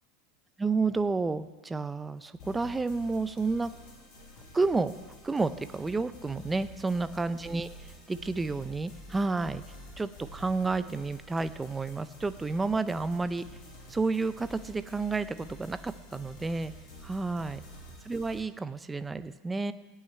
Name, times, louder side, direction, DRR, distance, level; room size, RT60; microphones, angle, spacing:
voice 1, 0.6-3.7 4.5-4.9 5.2-9.6 10.0-13.4 13.9-16.7 17.0-17.6 18.0-19.7, right 3 dB, 10° right, 12 dB, 0.5 m, -30 dB
sound 1, 2.4-18.4, left 1 dB, 50° left, 5.2 m, -49 dB
16.5 x 5.7 x 9.4 m, 1.2 s
supercardioid pair, 155°, 0 cm